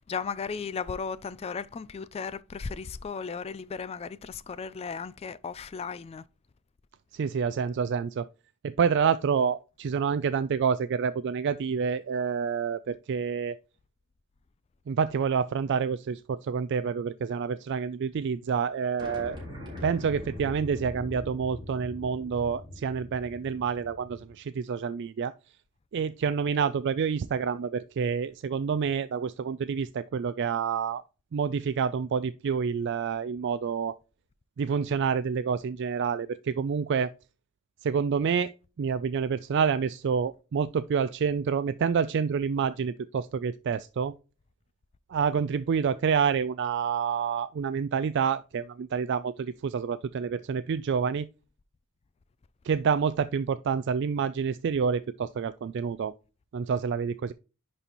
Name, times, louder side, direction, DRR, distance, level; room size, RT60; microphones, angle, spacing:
voice 1, 0.0-6.2, left 5 dB, 30° left, 0.3 m, -35 dB
voice 2, 7.1-8.3 8.6-13.6 14.9-19.4 19.8-25.3 25.9-31.0 31.3-34.0 34.6-37.1 37.8-38.5 38.8-44.1 45.1-51.3 52.6-56.1 56.5-57.3, right 6 dB, 55° right, 0.3 m, -28 dB
sound 1, 19.0-24.3, left 1 dB, 20° right, 4.1 m, -42 dB
10.5 x 4.2 x 2.9 m
head